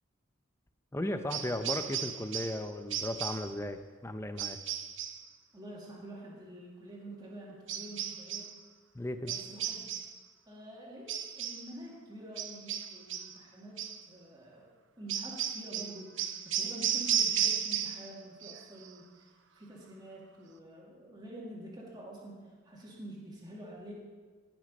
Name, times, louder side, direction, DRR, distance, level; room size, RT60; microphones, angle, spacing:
voice 1, 0.9-4.6 8.9-9.3, left 1 dB, 15° left, 9 dB, 0.5 m, -36 dB
sound 1, 1.3-2.6 2.9-3.5 4.4-5.2 7.7-8.5 9.3-10.2 11.1-11.7 12.4-13.4 13.8-14.0 15.1-18.1 18.4-18.9, right 9 dB, 70° right, 0.7 m, -34 dB
voice 2, 5.5-8.5 9.2-9.9 10.5-14.7 15.0-16.2 16.4-19.3 19.5-23.9, right 1 dB, 20° right, -4 dB, 2.2 m, -47 dB
17.5 x 6.1 x 5.3 m, 1.5 s
head